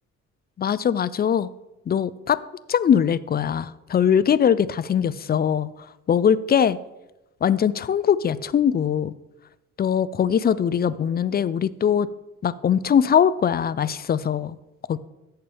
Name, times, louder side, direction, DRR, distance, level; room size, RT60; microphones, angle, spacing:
voice 1, 0.6-1.5 1.9-2.4 2.7-5.7 6.1-6.8 7.4-9.1 9.8-12.1 12.4-14.6 14.9-15.0, left 8 dB, 30° left, 16 dB, 0.4 m, -21 dB
13.5 x 6.8 x 3.5 m, 1.0 s
cardioid pair, 90°, 30 cm